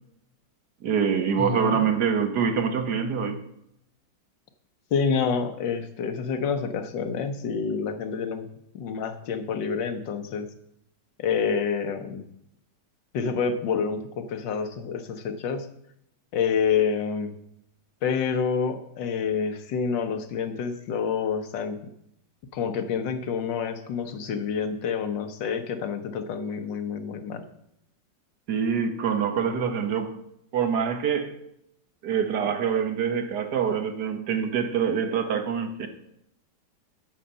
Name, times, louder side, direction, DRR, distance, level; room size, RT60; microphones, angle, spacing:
voice 1, 0.8-3.4 28.5-30.2 30.5-31.4 32.0-35.9, right 7 dB, 65° right, 1.5 m, -25 dB
voice 2, 1.4-1.8 4.9-8.5 8.7-10.5 11.2-12.2 13.1-15.7 16.3-17.3 18.0-21.8 22.5-27.5, left 6 dB, 85° left, 1.6 m, -28 dB
9.0 x 7.2 x 5.4 m
omnidirectional pair, 1.9 m